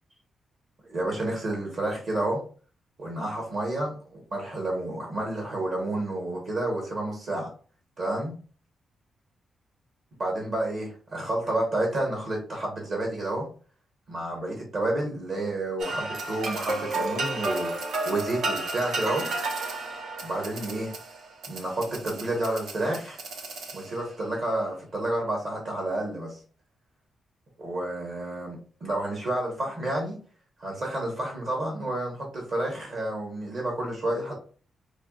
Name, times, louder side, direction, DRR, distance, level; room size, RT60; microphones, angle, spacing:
voice 1, 0.9-2.4 3.0-7.5 8.0-8.3 10.2-13.5 14.1-19.3 20.2-20.9 21.5-23.2 23.7-26.4 27.6-30.2 30.6-34.3, right 1 dB, 45° right, -1 dB, 1.1 m, -30 dB
sound 1, 15.8-24.2, right 2 dB, 75° right, 0.8 m, -32 dB
4.5 x 2.7 x 2.4 m, 0.40 s
wide cardioid pair, 180°, 0 cm